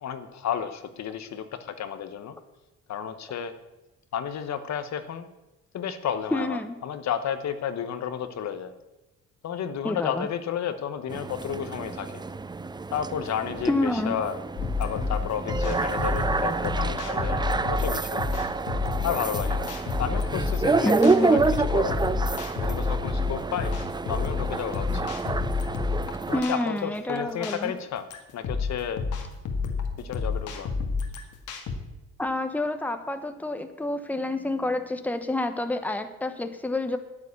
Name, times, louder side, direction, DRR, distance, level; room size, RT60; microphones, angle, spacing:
voice 1, 0.0-2.3 2.9-3.5 4.1-5.3 5.7-8.7 9.4-12.2 12.9-14.4 14.8-18.2 19.0-19.7 20.0-22.0 22.6-23.8 24.1-25.1 26.3-28.1 28.3-29.1 30.0-30.7, left 8 dB, 65° left, 10 dB, 1.1 m, -32 dB
voice 2, 6.3-6.8 9.8-10.3 13.7-14.1 20.8-21.4 26.3-27.7 32.2-37.0, left 2 dB, 5° left, 8 dB, 1.1 m, -28 dB
sound 1, 11.1-26.4, right 4 dB, 15° right, 0.4 m, -28 dB
sound 2, 14.6-31.8, left 4 dB, 80° left, 1.7 m, -30 dB
9.7 x 9.1 x 8.4 m, 1.0 s
cardioid pair, 90°, 30 cm